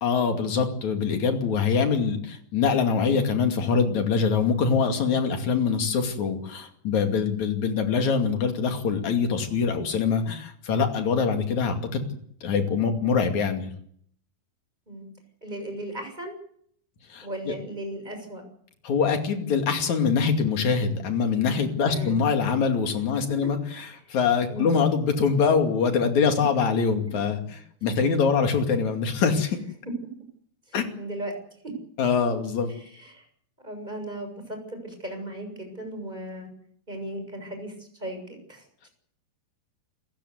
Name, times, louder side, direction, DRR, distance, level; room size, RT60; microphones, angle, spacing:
voice 1, 0.0-12.0 12.4-13.7 17.1-17.5 18.8-29.6 30.7-30.9 32.0-32.7, left 5 dB, 50° left, 5 dB, 3.5 m, -24 dB
voice 2, 15.4-16.3 17.2-18.4 21.9-22.2 24.5-24.7 30.7-31.4 31.6-31.7 32.7-33.2 33.6-36.5 36.9-38.9, right 1 dB, 10° right, 5 dB, 6.8 m, -37 dB
29.0 x 15.5 x 8.1 m, 0.65 s
omnidirectional pair, 4.8 m